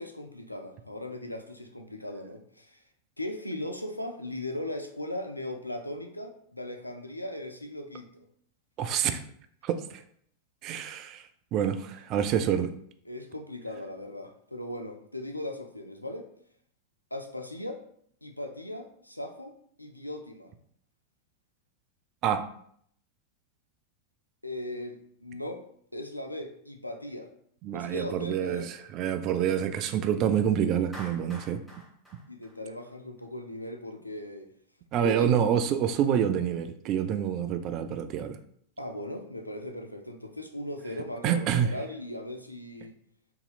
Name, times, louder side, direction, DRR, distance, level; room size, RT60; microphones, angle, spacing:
voice 1, 0.0-2.8 3.2-8.1 13.1-16.3 17.1-17.8 18.2-20.5 24.4-25.6 25.9-27.3 27.7-28.7 32.3-34.5 34.9-35.3 38.8-43.0, left 1 dB, 85° left, 5 dB, 0.4 m, -38 dB
voice 2, 8.8-9.2 9.6-10.0 10.6-12.7 22.2-22.4 27.6-31.6 34.9-38.4 41.2-41.7, right 9 dB, 40° right, 9 dB, 0.3 m, -27 dB
Clapping, 30.9-33.2, right 1 dB, 5° left, 1.2 m, -47 dB
3.7 x 2.7 x 2.3 m, 0.64 s
figure-of-eight pair, 90°, 0 cm